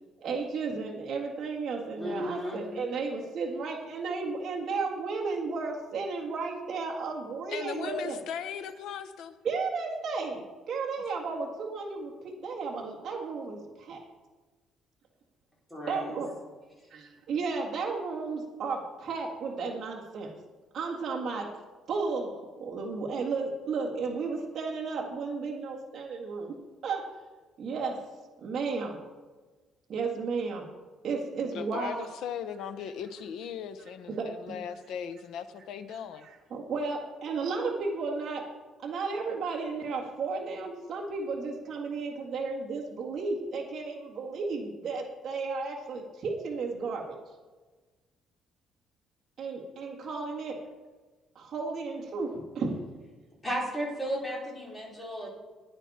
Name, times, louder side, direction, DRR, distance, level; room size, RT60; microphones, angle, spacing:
voice 1, 0.2-8.2 9.4-14.1 15.9-16.3 16.9-20.3 20.7-21.5 21.9-26.5 26.8-27.0 27.6-28.0 28.4-29.0 29.9-30.7 31.0-32.1 34.1-34.6 36.2-38.5 38.8-47.2 49.4-50.6 51.4-52.8 55.2-55.3, right 4 dB, 40° right, -2 dB, 1.9 m, -33 dB
voice 2, 2.0-2.6 15.7-16.2 53.4-55.3, equal, 10° left, -4 dB, 3.8 m, -34 dB
voice 3, 7.5-9.3 31.4-36.3, left 8 dB, 70° left, 12 dB, 0.8 m, -38 dB
15.0 x 9.8 x 4.3 m, 1.3 s
cardioid pair, 165°, 0 cm